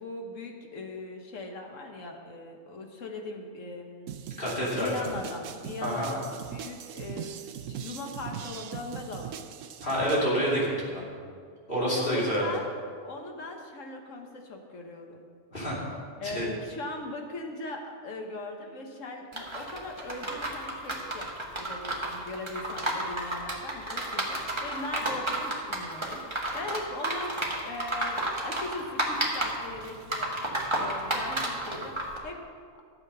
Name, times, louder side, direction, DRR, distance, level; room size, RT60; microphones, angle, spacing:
voice 1, 0.0-4.1 4.8-7.4 7.7-9.4 11.8-12.7 13.0-15.2 16.2-21.3 21.6-30.3 30.7-31.9 32.2-32.4, left 2 dB, 70° left, 3 dB, 1.6 m, -39 dB
sound 1, 4.1-10.3, right 9 dB, 75° right, 1.0 m, -40 dB
voice 2, 4.4-4.9 5.8-6.1 9.8-11.0 11.7-12.5 15.5-15.8 16.2-16.4, equal, 45° left, -6 dB, 3.1 m, -28 dB
sound 2, 19.3-32.2, right 1 dB, 20° right, 1.5 m, -32 dB
12.5 x 7.8 x 5.6 m, 2.1 s
omnidirectional pair, 1.4 m